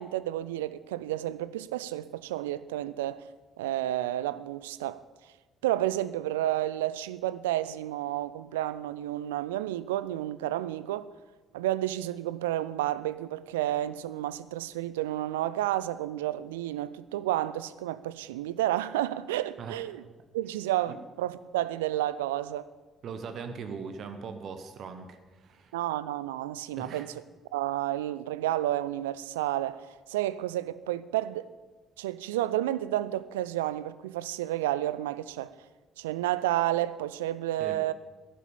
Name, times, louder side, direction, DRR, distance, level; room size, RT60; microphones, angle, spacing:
voice 1, 0.0-3.2 3.6-5.0 5.6-11.1 11.5-20.0 20.3-22.7 25.7-27.1 27.5-31.5 32.0-35.5 36.0-37.9, right 14 dB, 75° right, 0.4 m, -31 dB
voice 2, 23.0-25.7 26.7-27.1 37.6-37.8, right 5 dB, 50° right, 1.2 m, -40 dB
12.5 x 11.0 x 7.1 m
figure-of-eight pair, 45°, 0 cm